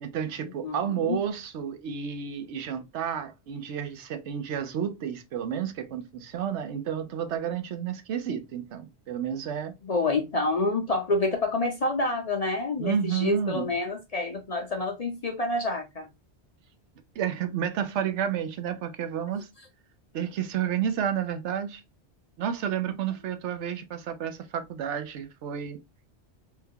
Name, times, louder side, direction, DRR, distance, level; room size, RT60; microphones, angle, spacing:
voice 1, 0.0-9.7 12.8-13.7 17.2-19.5 20.1-21.8 22.4-25.8, right 8 dB, 85° right, 0.9 m, -31 dB
voice 2, 0.6-1.2 9.8-16.1, left 2 dB, 45° left, 0.5 m, -28 dB
3.6 x 2.3 x 2.7 m
omnidirectional pair, 1.1 m